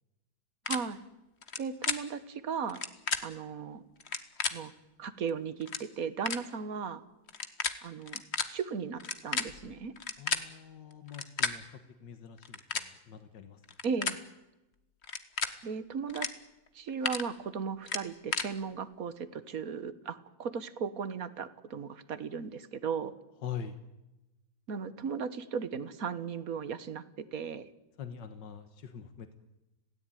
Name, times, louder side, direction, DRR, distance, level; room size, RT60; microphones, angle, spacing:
sound 1, 0.7-0.8 1.4-1.6 1.8-2.0 2.7-3.2 4.0-4.5 5.3-5.4 5.6-5.8 6.3-6.4 7.3-7.7 8.0-8.4 9.0-10.4 11.1-11.5 12.4-12.9 13.6-14.2 15.0-15.5 16.1-16.3 16.7-17.2 17.9-18.5, left 5 dB, 40° left, 1.5 m, -32 dB
voice 1, 0.7-1.0 1.6-2.8 3.2-3.8 4.5-4.7 5.0-7.0 7.8-8.2 8.5-9.9 13.8-14.2 15.6-16.3 16.7-23.1 24.7-27.6, right 6 dB, 55° right, 14 dB, 1.6 m, -36 dB
voice 2, 10.2-11.7 12.0-13.6 23.4-23.8 28.0-29.4, left 8 dB, 90° left, 8 dB, 2.0 m, -43 dB
26.5 x 17.0 x 9.2 m, 0.99 s
omnidirectional pair, 1.8 m